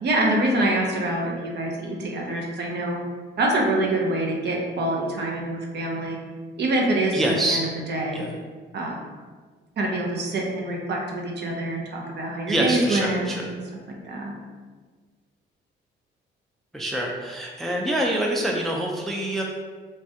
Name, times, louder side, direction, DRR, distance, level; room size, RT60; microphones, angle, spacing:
voice 1, 0.0-3.0 3.4-6.2 6.6-8.2 8.7-9.0 9.8-13.6 14.0-14.3, right 1 dB, 55° right, 0 dB, 0.6 m, -25 dB
voice 2, 7.1-7.6 8.1-8.3 12.5-13.4 16.7-19.4, right 1 dB, ahead, -1 dB, 0.3 m, -25 dB
3.2 x 2.2 x 2.7 m, 1.5 s
cardioid pair, 105°, 20 cm